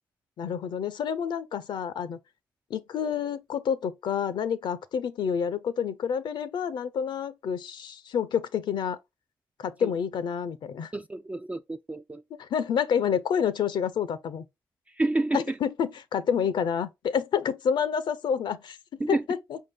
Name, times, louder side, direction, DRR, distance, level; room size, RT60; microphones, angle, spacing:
voice 1, 0.4-2.2 2.7-9.0 9.6-10.9 12.4-14.4 15.3-19.6, left 7 dB, 65° left, 0.5 m, -28 dB
voice 2, 10.9-12.2 14.9-15.6 19.0-19.2, right 2 dB, 15° right, 0.3 m, -29 dB
5.0 x 2.7 x 3.6 m
supercardioid pair, 55°, 8 cm